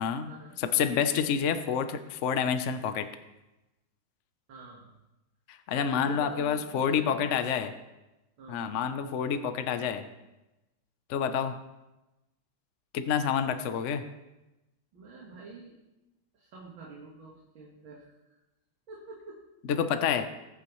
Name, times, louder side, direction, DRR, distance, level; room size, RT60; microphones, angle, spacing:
voice 1, 0.0-0.3 0.6-3.1 5.5-7.7 8.5-10.1 11.1-11.6 12.9-14.0 19.7-20.3, left 7 dB, 75° left, 9 dB, 0.6 m, -28 dB
voice 2, 4.5-4.9 5.7-7.3 7.6-7.7 8.4-8.8 14.9-15.8 16.3-18.1 18.9-19.4, right 3 dB, 70° right, -3 dB, 2.4 m, -46 dB
20.5 x 8.6 x 3.1 m, 1.0 s
omnidirectional pair, 2.2 m